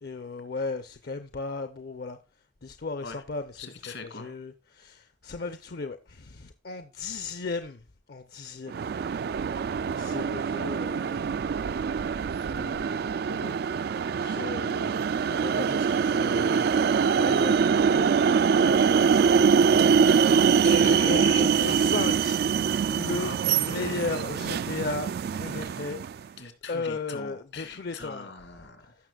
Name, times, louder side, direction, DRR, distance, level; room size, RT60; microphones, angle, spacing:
voice 1, 0.0-2.2 2.6-8.9 10.0-11.6 12.4-13.6 14.2-16.7 17.1-18.1 18.5-19.9 20.7-26.3 26.7-28.3 28.8-29.1, left 3 dB, 55° left, 0.6 m, -36 dB
voice 2, 3.6-4.3 20.2-22.2 23.2-24.1 26.4-29.0, left 4 dB, 80° left, 2.4 m, -41 dB
sound 1, 8.7-26.2, right 6 dB, 55° right, 0.3 m, -24 dB
15.5 x 6.4 x 2.3 m
head